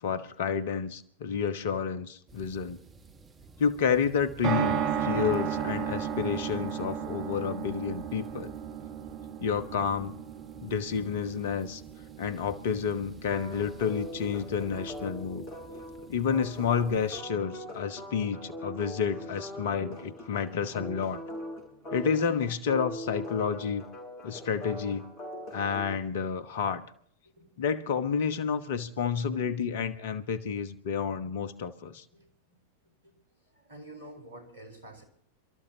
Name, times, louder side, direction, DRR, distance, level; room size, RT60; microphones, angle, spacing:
voice 1, 0.0-2.8 3.6-8.5 9.4-10.1 10.6-11.8 12.2-15.5 16.1-21.2 21.9-23.8 24.2-25.1 25.5-26.8 27.6-32.0, left 6 dB, 55° left, 11 dB, 1.2 m, -30 dB
sound 1, 2.3-17.2, right 3 dB, 20° right, 1.8 m, -53 dB
sound 2, 4.4-16.7 16.9-17.0 17.2-17.3, right 8 dB, 40° right, 1.2 m, -35 dB
sound 3, 13.3-26.0, left 1 dB, 35° left, 5.8 m, -42 dB
voice 2, 27.4-27.7 32.1-32.6 33.0-33.1 33.4-35.0, right 1 dB, 70° right, 5 dB, 4.4 m, -49 dB
28.5 x 13.5 x 2.9 m, 0.63 s
figure-of-eight pair, 90°, 0 cm